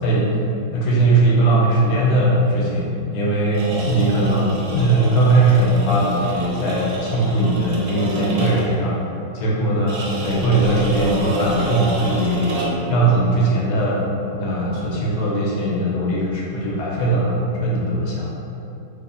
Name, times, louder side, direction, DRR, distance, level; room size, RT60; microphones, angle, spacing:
voice 1, 0.0-0.3 0.7-9.0 9.3-10.0 10.2-12.6 12.9-18.3, right 2 dB, 80° left, -4 dB, 1.6 m, -19 dB
sound 1, 3.5-8.8 9.9-13.0, right 2 dB, 80° right, 1.5 m, -29 dB
3.5 x 2.9 x 4.1 m, 2.8 s
omnidirectional pair, 2.3 m